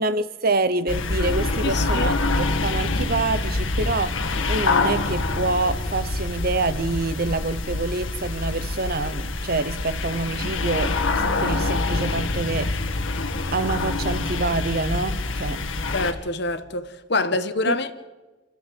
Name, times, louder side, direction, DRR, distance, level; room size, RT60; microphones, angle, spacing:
voice 1, 0.0-12.8 13.5-15.8 17.7-17.8, right 3 dB, 50° right, 0.9 m, -26 dB
sound 1, 0.9-16.1, left 3 dB, 80° left, 1.7 m, -26 dB
voice 2, 1.6-2.1 15.9-17.9, left 3 dB, 55° left, 1.3 m, -26 dB
28.0 x 14.0 x 7.8 m
head